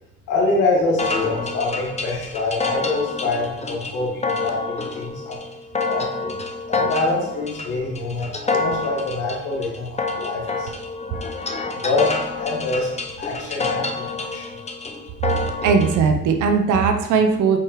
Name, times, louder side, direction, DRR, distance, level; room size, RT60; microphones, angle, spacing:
voice 1, 0.3-5.4 5.9-6.3 6.7-10.8 11.8-12.9 13.2-14.4, left 3 dB, 85° left, -6 dB, 2.1 m, -25 dB
sound 1, 1.0-16.0, left 3 dB, 20° left, 0.8 m, -28 dB
voice 2, 15.3-17.6, right 5 dB, 80° right, 6 dB, 0.7 m, -19 dB
8.4 x 4.7 x 3.1 m, 0.87 s
cardioid pair, 90°, 30 cm